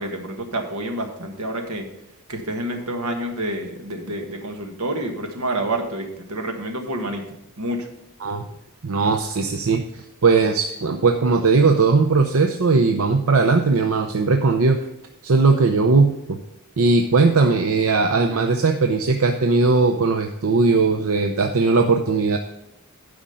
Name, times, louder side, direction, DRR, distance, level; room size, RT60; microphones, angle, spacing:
voice 1, 0.0-1.9 2.3-7.2 7.6-7.9, right 1 dB, 90° right, 3 dB, 1.6 m, -28 dB
voice 2, 8.8-14.8 15.2-16.4 16.8-22.4, right 4 dB, 70° right, 5 dB, 0.6 m, -18 dB
11.5 x 5.1 x 5.6 m, 0.84 s
head